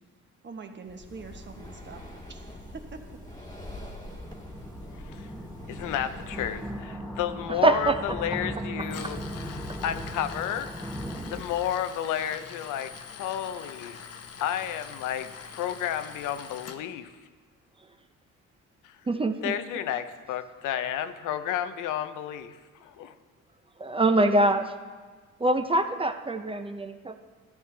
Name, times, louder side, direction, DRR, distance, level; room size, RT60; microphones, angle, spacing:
voice 1, 0.4-2.0 2.3-3.2, right 4 dB, 35° right, 5 dB, 1.1 m, -44 dB
Breathing, 0.8-7.0, left 1 dB, 15° left, 1.4 m, -44 dB
sound 1, 1.1-1.3 1.9-11.4, equal, 5° right, 1.0 m, -39 dB
voice 2, 4.9-5.3 5.7-10.9 11.3-12.9 13.2-14.0 14.4-17.1 18.8-19.0 19.4-23.1, left 10 dB, 85° left, 11 dB, 0.6 m, -32 dB
voice 3, 7.6-8.0 19.1-19.6 23.8-24.7 25.4-27.2, right 1 dB, 20° right, 8 dB, 0.5 m, -24 dB
Tools, 8.8-16.8, left 6 dB, 55° left, 0.8 m, -44 dB
13.5 x 9.4 x 3.3 m, 1.4 s
cardioid pair, 90°, 30 cm